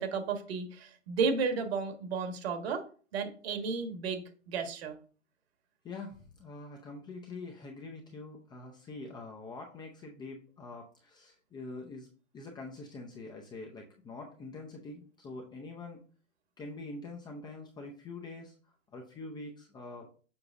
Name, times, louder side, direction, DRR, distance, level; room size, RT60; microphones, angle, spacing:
voice 1, 0.0-2.8 3.1-4.9, right 5 dB, 50° right, 7 dB, 1.6 m, -33 dB
voice 2, 5.8-12.1 12.3-16.0 16.6-18.5 18.9-20.1, left 3 dB, 10° left, 1 dB, 0.6 m, -45 dB
7.0 x 5.7 x 2.6 m, 0.39 s
hypercardioid pair, 125°, 39 cm